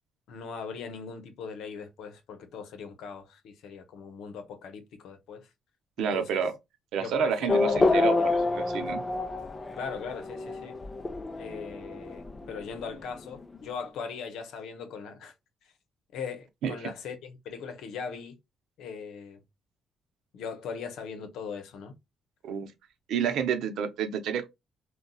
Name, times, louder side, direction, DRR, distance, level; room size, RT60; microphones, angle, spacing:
voice 1, 0.3-5.5 6.0-6.4 7.0-8.3 9.7-10.8 11.4-15.3 16.1-18.4 18.8-19.4 20.3-21.9, left 6 dB, 80° left, 0.8 m, -39 dB
voice 2, 6.0-6.5 6.9-8.2 8.5-9.0 16.6-16.9 22.4-22.7 23.1-24.5, right 7 dB, 80° right, 0.7 m, -29 dB
Race car auto racing / Accelerating revving vroom, 7.5-13.6, left 3 dB, 25° left, 0.5 m, -28 dB
3.9 x 2.2 x 2.3 m
cardioid pair, 90°, 0 cm